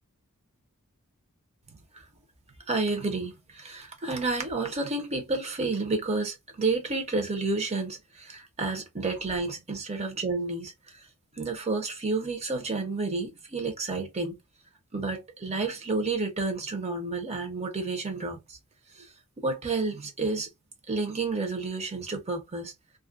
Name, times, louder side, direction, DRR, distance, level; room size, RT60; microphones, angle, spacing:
voice 1, 2.7-10.7 11.4-14.4 14.9-18.6 19.0-19.1 19.4-20.5 20.9-22.7, right 3 dB, 30° right, 0.8 m, -30 dB
2.4 x 2.1 x 2.4 m
head